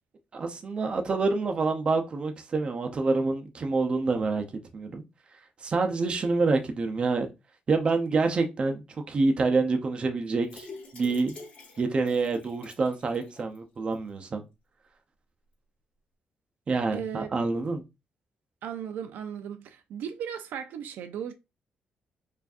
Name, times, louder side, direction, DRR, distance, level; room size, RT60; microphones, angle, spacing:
voice 1, 0.3-4.4 4.7-5.0 5.6-7.3 7.7-8.8 9.1-10.7 10.9-11.3 11.8-14.4 16.7-17.8, right 3 dB, 35° right, 0.6 m, -27 dB
sound 1, 10.4-13.6 13.9-14.0 14.3-14.4, left 3 dB, 45° left, 1.8 m, -47 dB
voice 2, 16.9-17.3 18.6-21.3, right 8 dB, 90° right, 0.5 m, -36 dB
4.6 x 2.6 x 2.5 m
cardioid pair, 145°, 3 cm